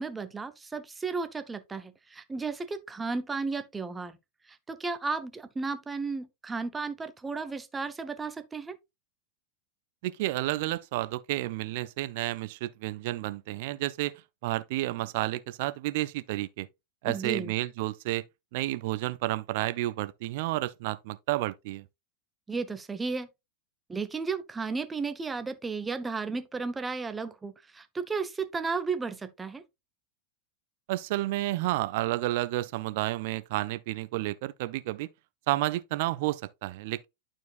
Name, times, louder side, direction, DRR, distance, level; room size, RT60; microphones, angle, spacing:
voice 1, 0.0-4.2 4.5-8.8 17.0-17.5 22.5-23.3 23.9-29.6, right 4 dB, 15° right, 0.7 m, -34 dB
voice 2, 10.0-14.1 14.4-16.7 17.0-18.2 18.5-21.8 30.9-35.1 35.5-37.1, right 17 dB, 50° right, 0.5 m, -31 dB
11.5 x 4.5 x 2.4 m
figure-of-eight pair, 90°, 0 cm